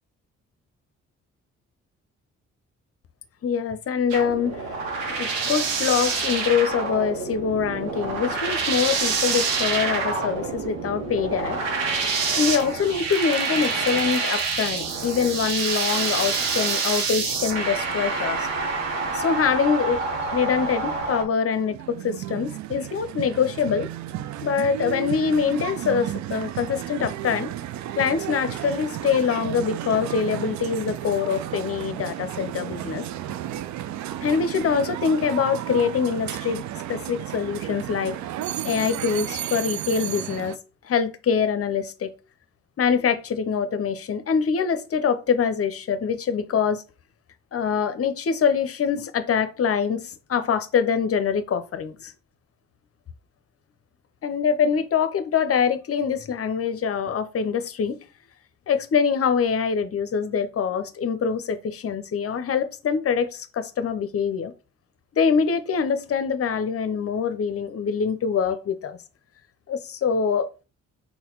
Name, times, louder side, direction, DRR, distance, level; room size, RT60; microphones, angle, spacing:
voice 1, 3.4-4.7 5.2-11.6 12.3-18.5 19.1-20.0 20.3-23.9 24.4-27.5 28.0-33.1 34.2-38.2 38.6-40.6 40.8-42.1 42.8-46.8 47.5-52.1 54.2-58.0 58.7-64.5 65.1-69.0 69.7-70.5, left 6 dB, 40° left, 0.7 m, -24 dB
sound 1, 4.1-21.2, right 4 dB, 85° right, 0.8 m, -27 dB
sound 2, 21.5-40.6, right 12 dB, 50° right, 0.4 m, -33 dB
4.1 x 2.3 x 3.9 m
hypercardioid pair, 40°, 37 cm